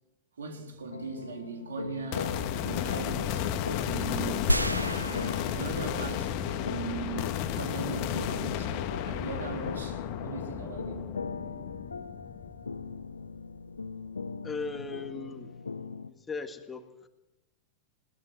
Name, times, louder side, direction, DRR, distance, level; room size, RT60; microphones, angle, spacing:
voice 1, 0.4-3.5 3.8-4.7 4.9-8.7 9.0-11.0, right 4 dB, 70° right, 3.7 m, -39 dB
sound 1, 0.9-16.1, left 4 dB, 75° left, 0.9 m, -40 dB
sound 2, 2.1-13.5, left 10 dB, 45° left, 1.7 m, -33 dB
sound 3, 4.5-6.4 6.8-6.9, right 1 dB, 85° right, 0.8 m, -31 dB
voice 2, 14.4-15.5 16.1-17.1, left 4 dB, 15° left, 1.8 m, -38 dB
21.0 x 19.5 x 7.8 m
figure-of-eight pair, 90°, 0 cm